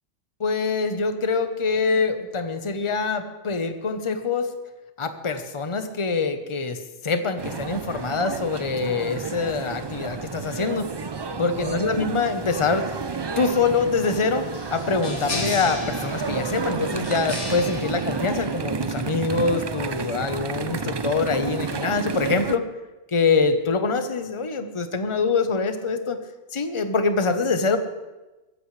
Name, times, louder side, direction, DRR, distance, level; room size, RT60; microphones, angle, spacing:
voice 1, 0.4-4.5 5.0-10.9 11.4-13.0 13.4-22.7 23.1-26.2 26.5-27.8, left 4 dB, 25° left, 8 dB, 1.0 m, -24 dB
sound 1, 7.4-22.6, right 5 dB, 45° right, 0.3 m, -31 dB
sound 2, 14.0-19.0, left 3 dB, 70° left, 2.2 m, -36 dB
21.5 x 15.5 x 3.3 m, 1.1 s
omnidirectional pair, 1.2 m